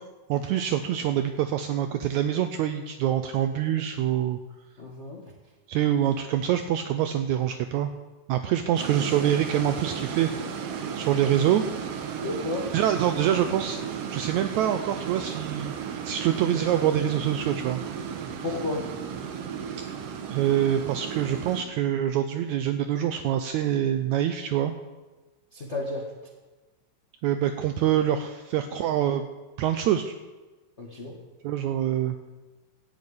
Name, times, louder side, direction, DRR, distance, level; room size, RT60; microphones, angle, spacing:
voice 1, 0.3-4.4 5.7-7.9 8.3-10.3 11.0-11.6 12.7-15.7 16.0-17.8 20.3-24.7 27.2-29.2 29.6-30.1 31.4-32.1, right 11 dB, 85° right, 8 dB, 1.7 m, -25 dB
voice 2, 4.8-5.2 12.2-12.7 18.4-18.9 25.5-26.0 30.8-31.2, left 2 dB, 70° left, -1 dB, 0.6 m, -32 dB
sound 1, 8.8-21.6, right 7 dB, 65° right, 1.6 m, -34 dB
12.5 x 8.2 x 8.5 m, 1.2 s
omnidirectional pair, 3.8 m